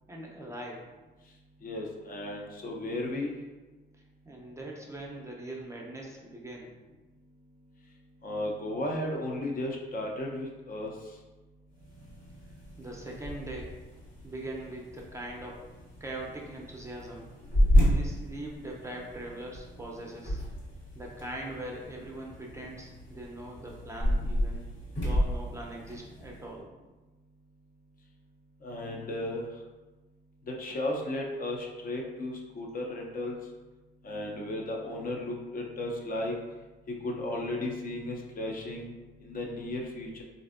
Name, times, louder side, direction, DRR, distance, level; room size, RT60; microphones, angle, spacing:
voice 1, 0.1-0.8 4.3-6.7 12.8-13.7 14.2-15.6 16.0-17.3 17.8-20.4 20.9-24.6 24.9-26.7, right 1 dB, 15° right, -2 dB, 0.5 m, -41 dB
voice 2, 1.6-3.3 8.2-10.9 28.6-29.5 30.5-33.4 34.0-36.4 36.9-38.9 39.2-40.2, left 1 dB, 45° left, 0 dB, 0.5 m, -34 dB
sound 1, 11.7-26.5, equal, 70° left, 1.4 m, -32 dB
3.2 x 2.6 x 2.5 m, 1.2 s
cardioid pair, 90°, 20 cm